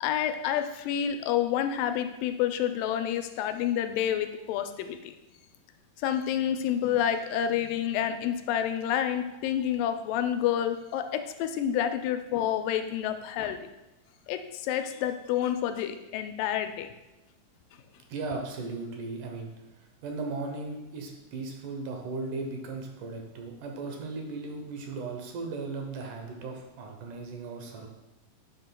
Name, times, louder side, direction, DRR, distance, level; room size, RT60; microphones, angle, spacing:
voice 1, 0.0-5.1 6.0-13.7 14.3-16.9, left 10 dB, 85° left, 8 dB, 2.2 m, -29 dB
voice 2, 18.1-19.5 20.0-27.9, right 3 dB, 75° right, 2 dB, 2.4 m, -37 dB
10.5 x 5.7 x 2.2 m, 1.0 s
omnidirectional pair, 3.8 m